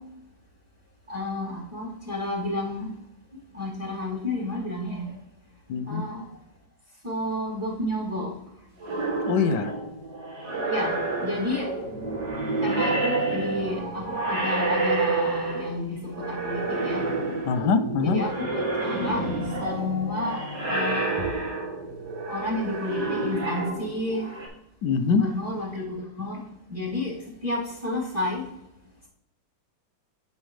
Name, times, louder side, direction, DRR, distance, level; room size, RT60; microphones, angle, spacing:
voice 1, 1.1-2.9 3.5-5.1 5.9-6.2 7.0-8.3 10.6-11.7 12.6-17.0 18.0-19.3 19.6-21.3 22.3-24.3 25.0-26.4 26.7-27.2 27.4-28.5, left 1 dB, 5° right, -4 dB, 2.6 m, -31 dB
voice 2, 5.7-6.0 9.3-9.7 17.4-18.2 24.8-25.2, left 6 dB, 70° left, 10 dB, 1.2 m, -23 dB
sound 1, 8.8-15.8 16.1-24.5, right 2 dB, 65° right, 2.8 m, -29 dB
9.6 x 5.8 x 3.2 m, 0.79 s
omnidirectional pair, 2.0 m